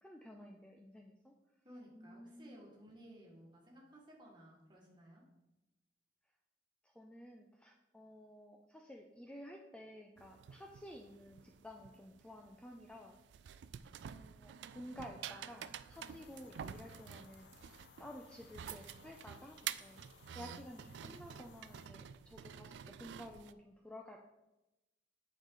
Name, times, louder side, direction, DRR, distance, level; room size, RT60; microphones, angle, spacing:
voice 1, 0.0-1.3 1.9-2.6 6.8-13.1 14.0-17.5 18.0-20.0 20.3-24.2, left 1 dB, 5° left, 1 dB, 0.4 m, -53 dB
voice 2, 1.6-5.2 16.0-16.1, equal, 25° right, -3 dB, 1.9 m, -57 dB
sound 1, 10.2-23.5, right 9 dB, 75° right, 0.3 m, -49 dB
sound 2, 15.9-21.9, left 6 dB, 75° left, 0.4 m, -62 dB
9.0 x 4.8 x 3.8 m, 0.98 s
head